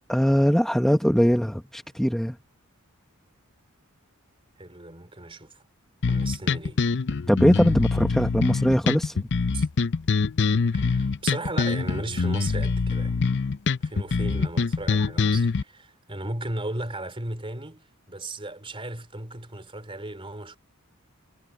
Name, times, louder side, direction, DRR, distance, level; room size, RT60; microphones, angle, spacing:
voice 1, 0.1-2.4 7.3-9.3, equal, ahead, 1.0 m, -21 dB
voice 2, 4.6-5.6 6.1-6.8 9.5-9.7 10.7-13.2 13.8-20.6, right 2 dB, 25° right, 3.6 m, -36 dB
sound 1, 6.0-15.6, left 4 dB, 55° left, 0.6 m, -24 dB
head